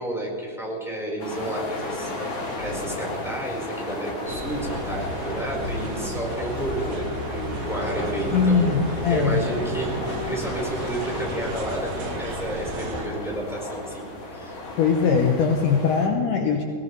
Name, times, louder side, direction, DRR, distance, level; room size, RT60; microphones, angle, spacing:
voice 1, 0.0-14.0 14.3-14.6, right 1 dB, ahead, -4 dB, 4.4 m, -31 dB
sound 1, 1.2-16.1, left 2 dB, 50° left, 5.0 m, -34 dB
sound 2, 4.2-13.1, right 1 dB, 60° right, 3.7 m, -33 dB
voice 2, 8.3-9.4 14.8-16.6, left 5 dB, 75° left, 1 dB, 1.9 m, -21 dB
23.5 x 18.0 x 3.4 m, 2.2 s
omnidirectional pair, 5.4 m